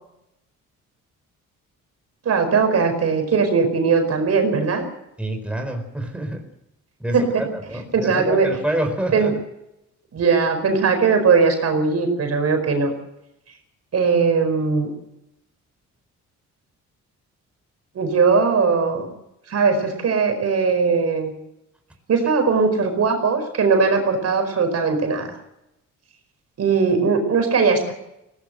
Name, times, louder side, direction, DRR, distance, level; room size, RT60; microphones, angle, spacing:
voice 1, 2.2-4.9 7.1-7.4 7.9-8.5 9.1-9.3 10.1-12.9 13.9-14.9 17.9-19.1 19.5-21.3 22.1-25.3 26.6-27.9, right 5 dB, 55° right, 5 dB, 4.8 m, -19 dB
voice 2, 5.2-6.4 7.0-9.3, right 1 dB, 5° right, 4 dB, 4.6 m, -27 dB
19.5 x 17.5 x 7.9 m, 0.86 s
cardioid pair, 90°, 30 cm